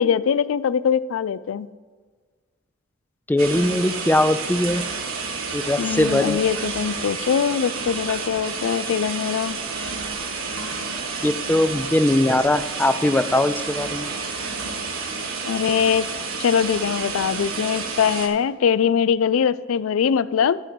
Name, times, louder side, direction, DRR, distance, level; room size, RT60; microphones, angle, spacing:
voice 1, 0.0-1.7 5.8-9.6 15.4-16.1 16.4-20.6, left 7 dB, 80° left, 17 dB, 0.4 m, -22 dB
voice 2, 3.3-4.8 5.5-6.4 11.2-14.1, left 1 dB, 10° left, 11 dB, 0.3 m, -20 dB
sound 1, 3.4-18.3, right 4 dB, 85° right, 1.4 m, -30 dB
12.0 x 5.1 x 6.1 m, 1.5 s
head